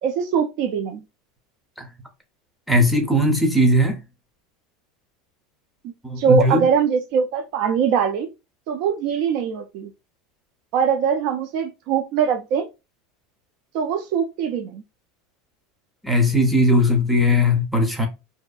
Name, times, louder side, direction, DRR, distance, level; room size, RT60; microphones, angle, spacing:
voice 1, 0.0-1.0 6.2-8.3 8.7-9.9 10.7-12.7 13.7-14.8, right 6 dB, 55° right, 0.3 m, -22 dB
voice 2, 2.7-4.0 6.0-6.7 16.0-18.1, left 1 dB, ahead, 0.5 m, -18 dB
2.6 x 2.2 x 2.3 m
supercardioid pair, 145°, 0 cm